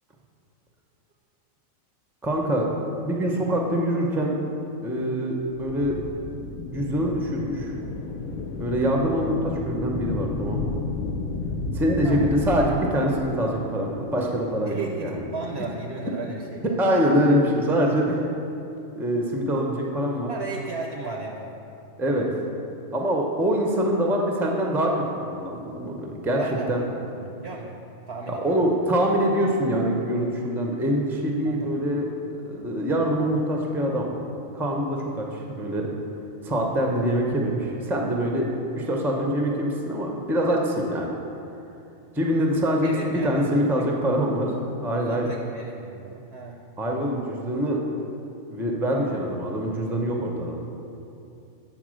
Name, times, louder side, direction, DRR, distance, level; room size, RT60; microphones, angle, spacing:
voice 1, 2.2-2.7 3.0-4.3 4.8-5.9 6.7-7.7 8.6-10.7 11.7-15.1 16.8-18.2 18.9-20.3 22.0-22.3 22.9-26.4 26.7-26.8 28.4-34.1 34.5-35.9 36.4-38.5 38.7-41.1 42.1-44.5 44.8-45.3 46.8-47.8 48.5-50.6, equal, 5° right, 0 dB, 0.4 m, -24 dB
sound 1, 5.5-12.8, left 3 dB, 80° left, 1.0 m, -32 dB
voice 2, 12.0-12.3 14.6-16.6 20.3-21.5 26.3-26.9 27.1-27.8 28.1-28.6 31.4-31.8 42.8-43.7 44.9-46.6, right 3 dB, 60° right, 1 dB, 0.7 m, -35 dB
7.8 x 4.2 x 6.2 m, 2.7 s
omnidirectional pair, 1.4 m